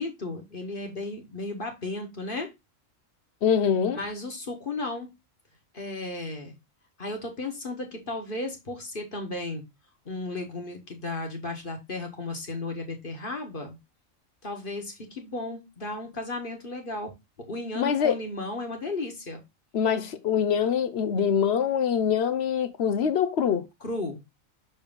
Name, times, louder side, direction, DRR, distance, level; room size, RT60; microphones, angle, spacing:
voice 1, 0.0-2.5 3.9-5.1 5.7-6.6 7.0-9.6 10.0-13.8 14.4-17.1 17.5-19.4 23.8-24.2, left 2 dB, 40° left, 1.7 m, -34 dB
voice 2, 3.4-4.0 17.8-18.2 19.7-23.7, left 7 dB, 60° left, 0.9 m, -24 dB
6.2 x 4.4 x 3.7 m
omnidirectional pair, 1.4 m